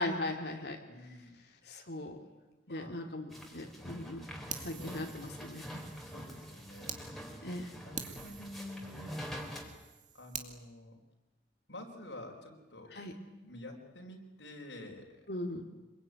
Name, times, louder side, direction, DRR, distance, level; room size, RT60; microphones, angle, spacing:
voice 1, 0.0-0.8 1.6-2.2 2.7-4.2 4.6-5.8 7.4-7.7 12.9-13.1 15.3-15.6, left 1 dB, 60° left, 3 dB, 2.6 m, -38 dB
voice 2, 0.9-1.4 2.7-2.9 4.7-5.0 6.0-7.0 7.8-9.3 10.1-11.0 11.7-13.0 13.4-15.3, left 1 dB, 75° left, 0 dB, 4.6 m, -48 dB
sound 1, 3.3-9.6, equal, ahead, 4.0 m, -45 dB
Fire, 4.5-7.0 7.5-7.6 7.9-10.5, right 7 dB, 45° right, 2.3 m, -46 dB
26.5 x 22.0 x 9.6 m, 1.1 s
head